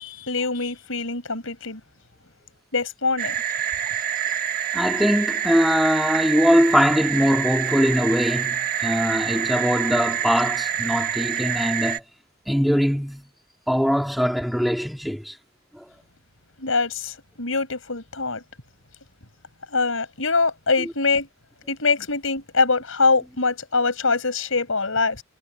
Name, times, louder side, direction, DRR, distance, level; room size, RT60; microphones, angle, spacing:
voice 1, 0.0-1.8 2.7-3.4 16.6-18.4 19.7-21.3 21.7-25.2, left 4 dB, 75° left, 5.7 m, -23 dB
sound 1, 3.2-12.0, right 9 dB, 45° right, 1.6 m, -26 dB
voice 2, 4.7-12.0 12.5-13.3 13.7-15.4 15.7-15.8, equal, ahead, 3.0 m, -21 dB
head